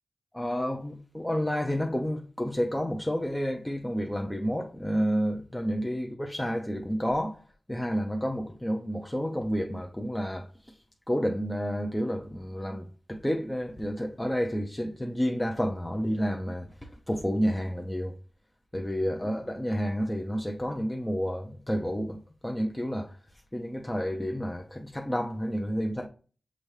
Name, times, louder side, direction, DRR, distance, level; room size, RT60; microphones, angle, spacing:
voice 1, 0.3-7.4 7.7-10.5 11.1-16.7 17.1-18.1 18.7-23.1 23.5-26.1, equal, 15° left, 0.6 m, -30 dB
6.2 x 2.7 x 3.2 m
cardioid pair, 45°, 0 cm